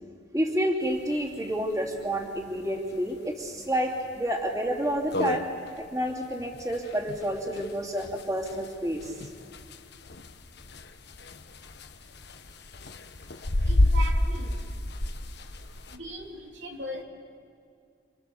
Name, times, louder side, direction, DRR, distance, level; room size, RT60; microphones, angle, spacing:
voice 1, 0.3-9.2, equal, 20° right, -2 dB, 2.8 m, -29 dB
sound 1, 0.9-1.0 1.3-1.4 1.7-1.8 2.4-2.6 3.1-3.2 3.7-3.8 4.1-4.2 4.7-4.8 4.9-16.0, left 1 dB, 60° left, 1.3 m, -30 dB
voice 2, 13.6-14.6 15.9-17.0, right 1 dB, 70° right, 0 dB, 3.4 m, -38 dB
30.0 x 27.0 x 7.0 m, 2.3 s
head